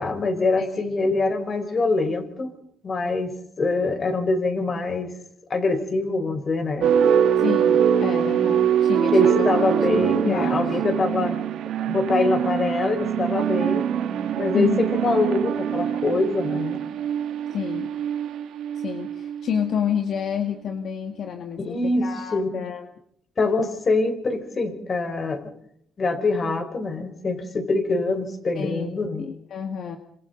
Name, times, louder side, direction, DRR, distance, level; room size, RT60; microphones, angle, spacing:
voice 1, 0.0-2.5 2.8-5.1 5.5-7.0 9.1-11.4 11.9-13.9 14.4-16.8 21.6-22.5 23.4-25.4 26.0-29.3, left 3 dB, 40° left, 7 dB, 5.1 m, -24 dB
voice 2, 0.6-1.1 7.4-10.6 11.1-11.3 14.5-14.8 17.5-17.9 18.7-22.9 28.5-28.9 29.2-30.0, left 8 dB, 65° left, 5 dB, 2.0 m, -29 dB
sound 1, 6.8-20.2, right 9 dB, 85° right, 3.1 m, -23 dB
28.0 x 26.5 x 4.0 m, 0.69 s
cardioid pair, 90°, 0 cm